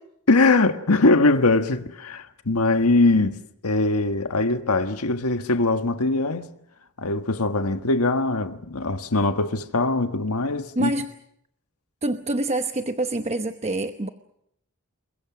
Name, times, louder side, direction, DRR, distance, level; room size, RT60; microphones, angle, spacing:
voice 1, 0.3-6.5 7.0-10.9, left 2 dB, 85° left, 1.5 m, -21 dB
voice 2, 10.8-11.1 12.0-14.1, right 2 dB, 30° right, 1.0 m, -26 dB
29.0 x 22.5 x 6.2 m
head